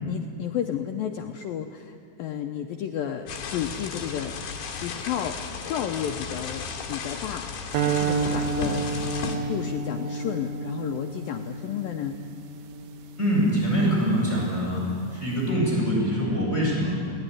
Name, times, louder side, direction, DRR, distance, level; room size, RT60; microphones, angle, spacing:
voice 1, 0.1-4.4 4.8-8.9 9.5-12.2, left 9 dB, 90° left, 4 dB, 2.0 m, -32 dB
sound 1, 3.3-9.4, left 5 dB, 65° left, 4.1 m, -34 dB
sound 2, 7.7-14.1, right 5 dB, 70° right, 2.7 m, -30 dB
voice 2, 13.2-14.8 15.1-16.9, equal, 15° left, -5 dB, 7.2 m, -24 dB
22.0 x 18.5 x 9.9 m, 2.4 s
omnidirectional pair, 5.2 m